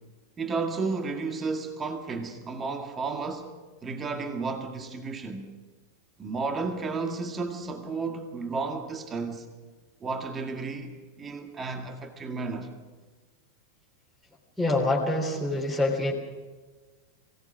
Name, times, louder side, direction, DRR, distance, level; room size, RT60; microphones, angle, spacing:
voice 1, 0.4-3.5 3.8-5.5 6.2-9.5 10.0-12.7, right 4 dB, 20° right, 2.0 m, -32 dB
voice 2, 14.6-16.1, left 2 dB, 5° right, 3.5 m, -25 dB
24.0 x 17.5 x 6.4 m
figure-of-eight pair, 90°, 0 cm